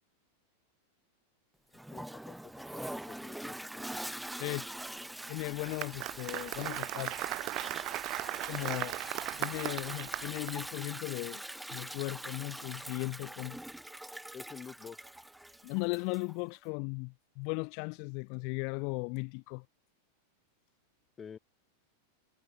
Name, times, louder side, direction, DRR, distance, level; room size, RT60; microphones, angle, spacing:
Toilet flush, 1.7-16.4, right 1 dB, 5° right, 0.5 m, -44 dB
voice 1, 1.9-3.9 14.3-15.1 21.2-21.4, left 7 dB, 20° left, 2.7 m, -49 dB
voice 2, 5.3-7.2 8.4-9.0 9.4-11.4 11.7-13.6 15.6-19.6, left 39 dB, 45° left, 1.5 m, -37 dB
Applause, 5.4-10.6, right 19 dB, 40° right, 0.9 m, -37 dB
figure-of-eight pair, 90°, 0 cm